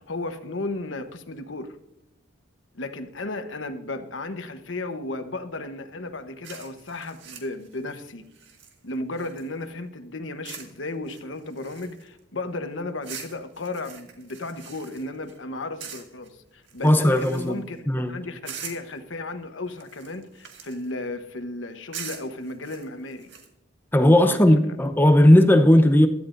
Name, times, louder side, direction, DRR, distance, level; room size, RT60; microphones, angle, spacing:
voice 1, 0.0-1.8 2.7-8.2 8.8-23.3 24.3-24.5, left 2 dB, 85° left, 1.1 m, -34 dB
sound 1, 6.4-9.7 10.4-10.8 11.1-12.2 13.0-15.4 15.8-16.3 16.7-17.7 18.4-19.0 19.7-20.9 21.9-23.5, right 7 dB, 65° right, 1.9 m, -42 dB
voice 2, 16.8-18.1 23.9-26.1, left 1 dB, 10° left, 0.7 m, -17 dB
16.5 x 12.0 x 2.6 m
head